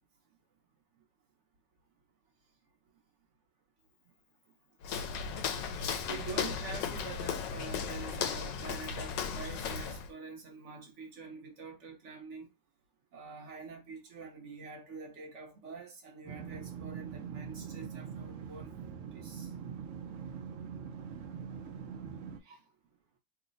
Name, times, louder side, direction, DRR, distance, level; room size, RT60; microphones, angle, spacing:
Walk footsteps, 4.8-10.1, left 6 dB, 85° left, 1.2 m, -36 dB
voice 1, 6.1-12.5 13.1-18.7 19.1-19.5 22.4-22.6, right 4 dB, 55° right, 1.0 m, -46 dB
sound 1, 16.3-22.4, right 7 dB, 85° right, 0.6 m, -43 dB
3.1 x 2.0 x 3.9 m
omnidirectional pair, 1.9 m